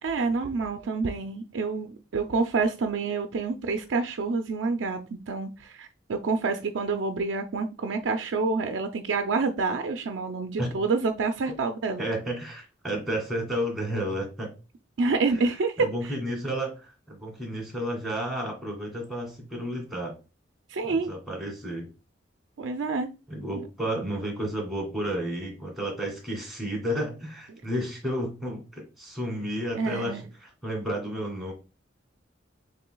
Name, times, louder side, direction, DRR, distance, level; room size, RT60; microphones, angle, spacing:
voice 1, 0.0-5.0 5.3-12.0 15.0-16.1 20.7-21.1 22.6-23.1 29.7-30.2, right 4 dB, 80° right, 5 dB, 0.4 m, -28 dB
voice 2, 12.0-14.5 15.8-20.1 20.8-21.9 23.3-30.2 30.6-31.5, equal, ahead, 0 dB, 2.0 m, -32 dB
6.9 x 3.2 x 2.2 m, 0.31 s
head